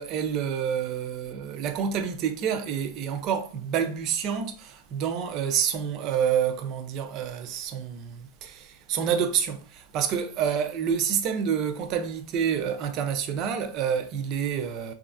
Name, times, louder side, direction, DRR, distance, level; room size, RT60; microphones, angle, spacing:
voice 1, 0.0-14.9, right 8 dB, 35° right, 0.3 m, -28 dB
3.0 x 2.4 x 2.4 m
supercardioid pair, 150°, 0 cm